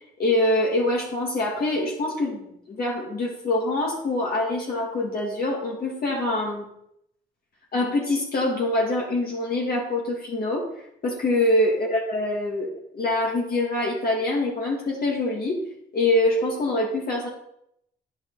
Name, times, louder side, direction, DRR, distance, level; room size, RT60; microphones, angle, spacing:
voice 1, 0.2-6.7 7.7-10.7 11.0-15.6 15.9-17.3, left 1 dB, 50° left, -2 dB, 2.8 m, -24 dB
10.5 x 9.3 x 4.2 m, 0.74 s
cardioid pair, 90°, 20 cm